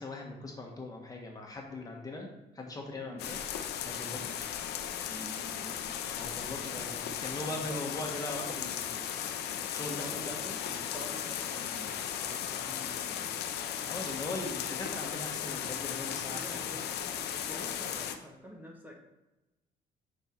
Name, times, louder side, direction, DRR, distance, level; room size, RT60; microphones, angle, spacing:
voice 1, 0.0-2.3 2.5-3.4 3.8-4.2 6.1-9.2 9.7-10.6 13.9-16.8, left 2 dB, 20° left, 0 dB, 1.5 m, -40 dB
sound 1, 3.2-18.2, left 9 dB, 75° left, 0.8 m, -36 dB
voice 2, 5.1-6.0 6.3-6.9 7.5-7.9 9.8-10.4 10.7-13.3 16.1-18.9, equal, 10° right, 0 dB, 1.5 m, -48 dB
6.8 x 5.6 x 4.6 m, 1.0 s
cardioid pair, 110°, 17 cm